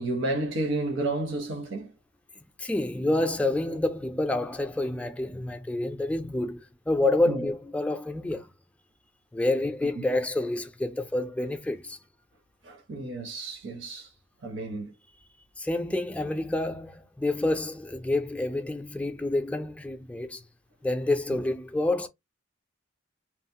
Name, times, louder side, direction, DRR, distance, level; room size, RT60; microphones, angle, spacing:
voice 1, 0.0-1.9 7.3-7.5 12.6-14.1 14.4-14.9 21.3-21.4, right 2 dB, 75° right, 0.8 m, -31 dB
voice 2, 2.6-8.5 9.3-12.0 15.6-20.4 20.8-22.1, left 2 dB, 5° left, 0.4 m, -28 dB
3.0 x 2.0 x 2.7 m
head